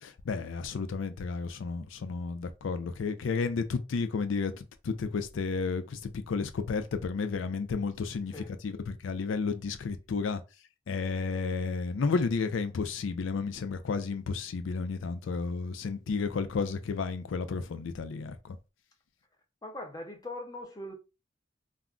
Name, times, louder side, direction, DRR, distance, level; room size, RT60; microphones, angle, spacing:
voice 1, 0.0-10.4 10.9-18.6, left 4 dB, 75° left, 0.4 m, -32 dB
voice 2, 19.6-20.9, left 1 dB, 20° left, 0.6 m, -40 dB
2.3 x 2.1 x 3.6 m
head